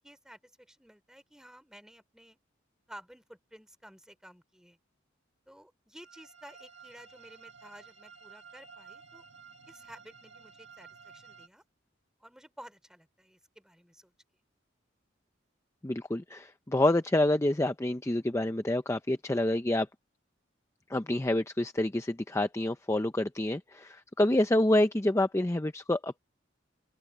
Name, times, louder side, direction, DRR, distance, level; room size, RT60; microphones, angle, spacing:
voice 1, 0.0-2.4 2.9-4.8 5.5-9.2 9.7-11.6 12.2-14.1, equal, 5° right, 3.3 m, -53 dB
sound 1, 6.0-11.5, right 5 dB, 80° right, 3.3 m, -53 dB
voice 2, 15.8-19.9 20.9-26.2, left 1 dB, 15° left, 0.6 m, -27 dB
open air
head